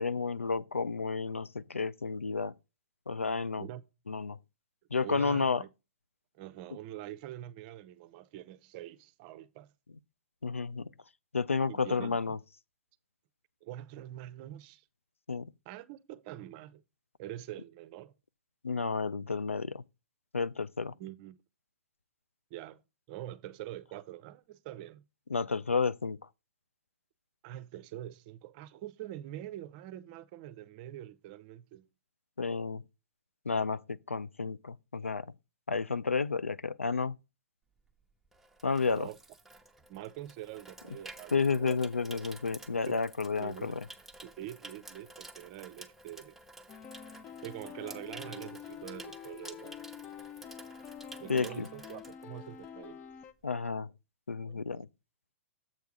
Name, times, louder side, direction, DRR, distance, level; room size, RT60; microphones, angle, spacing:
voice 1, 0.0-2.5 3.1-3.6 4.1-4.4 4.9-5.6 10.4-10.9 11.3-12.4 15.3-15.5 18.6-19.8 20.3-20.9 25.3-26.2 32.4-32.8 33.5-35.3 35.7-37.1 38.6-39.1 41.3-43.7 51.3-51.7 53.4-53.9 54.3-54.9, left 4 dB, 85° left, 0.4 m, -31 dB
voice 2, 5.0-5.7 6.4-9.7 11.7-12.2 13.6-14.8 15.7-16.8 17.2-18.1 21.0-21.4 22.5-22.8 23.1-25.0 27.4-31.9 38.8-39.2 39.9-42.2 42.9-43.0 43.4-43.8 44.2-46.3 47.4-49.8 51.2-53.0 54.5-54.8, right 13 dB, 40° right, 0.6 m, -45 dB
Water tap faucet / Sink (filling or washing), 37.8-52.8 53.1-53.4, right 2 dB, 5° right, 0.9 m, -52 dB
sound 1, 46.7-53.3, left 8 dB, 25° left, 0.5 m, -47 dB
7.6 x 4.6 x 5.0 m
figure-of-eight pair, 110°, 7 cm